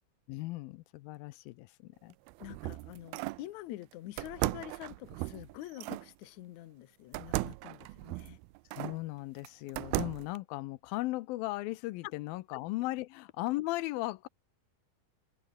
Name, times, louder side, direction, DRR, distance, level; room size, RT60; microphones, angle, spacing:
voice 1, 0.3-2.2 8.8-14.3, left 19 dB, 85° left, 2.4 m, -37 dB
sound 1, 2.1-3.5 4.2-6.1 7.1-9.0 9.4-10.4, right 22 dB, 90° right, 2.5 m, -37 dB
voice 2, 2.4-8.4, left 15 dB, 70° left, 1.9 m, -46 dB
omnidirectional pair, 4.2 m